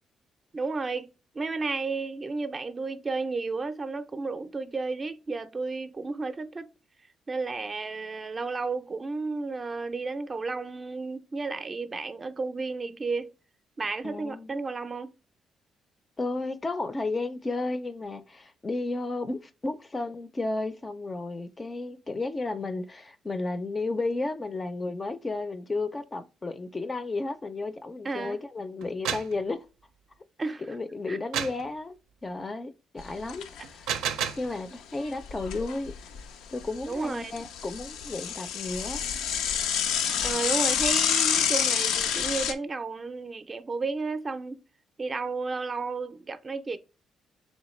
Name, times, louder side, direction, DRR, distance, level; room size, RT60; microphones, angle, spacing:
voice 1, 0.5-1.1 1.3-6.7 7.3-13.3 13.8-15.2 28.0-28.4 30.4-30.6 31.1-31.2 36.8-37.3 40.2-44.6 45.0-46.8, right 3 dB, 30° right, 0.4 m, -32 dB
voice 2, 14.0-14.5 16.2-29.7 30.7-32.0 32.2-33.9 34.4-35.9 36.5-39.0, left 3 dB, 25° left, 0.4 m, -33 dB
sound 1, 28.8-29.4 31.3-31.7 33.6-34.5, right 8 dB, 90° right, 0.5 m, -30 dB
Bicycle / Mechanisms, 33.0-33.6 34.0-34.1 34.3-34.4 35.1-36.2 36.6-42.5, left 8 dB, 90° left, 0.4 m, -28 dB
3.6 x 3.1 x 3.0 m
cardioid pair, 90°, 0 cm